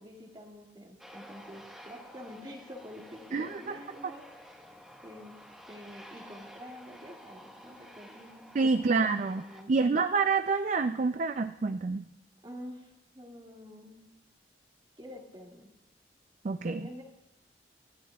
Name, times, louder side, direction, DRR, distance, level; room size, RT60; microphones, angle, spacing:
voice 1, 0.0-4.2 5.0-5.3 5.7-8.8 9.0-9.7 12.4-14.0 15.0-15.7 16.6-17.0, equal, 25° right, -1 dB, 2.0 m, -47 dB
Aircraft, 1.0-9.6, equal, ahead, 1.3 m, -51 dB
voice 2, 3.3-3.8 8.5-12.1 16.4-16.8, right 4 dB, 40° right, 9 dB, 0.4 m, -28 dB
28.0 x 13.0 x 2.3 m, 0.97 s
head